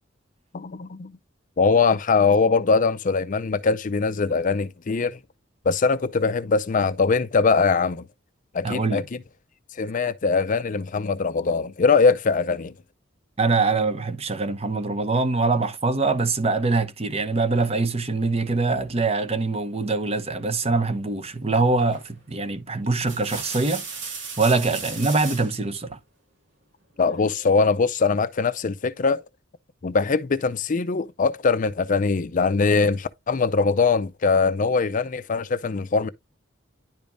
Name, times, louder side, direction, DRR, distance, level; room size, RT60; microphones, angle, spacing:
voice 1, 0.5-1.2 1.6-5.2 5.7-8.0 8.5-9.0 9.8-12.7 27.0-29.2 29.8-36.1, left 4 dB, 40° left, 0.5 m, -22 dB
voice 2, 8.6-9.1 13.4-24.1 24.4-26.0, right 3 dB, 30° right, 0.8 m, -24 dB
sound 1, 21.9-22.2 22.8-25.5 27.0-27.7, right 5 dB, 65° right, 2.6 m, -36 dB
10.5 x 5.2 x 2.6 m
head